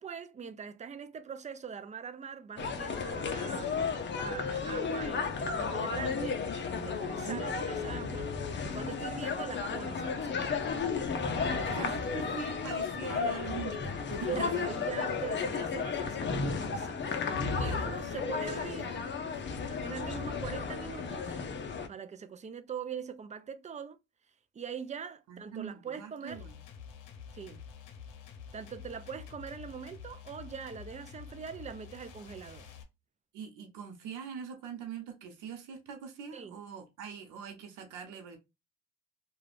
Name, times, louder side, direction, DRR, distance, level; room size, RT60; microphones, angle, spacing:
voice 1, 0.0-3.8 4.1-6.4 6.8-10.7 11.3-12.3 14.3-17.1 17.6-18.9 19.7-21.4 21.9-24.0 24.5-26.4 27.3-27.6 28.5-32.7 36.3-36.5, right 7 dB, 25° right, 0.4 m, -42 dB
sound 1, 2.6-21.9, left 5 dB, 40° left, 0.6 m, -33 dB
voice 2, 11.5-14.7 15.0-15.2 17.6-18.2 18.5-19.3 25.3-26.6 33.3-38.4, right 7 dB, 85° right, 0.7 m, -43 dB
sound 2, 26.3-32.8, left 7 dB, 85° left, 0.7 m, -49 dB
2.4 x 2.3 x 3.2 m
cardioid pair, 90°, 30 cm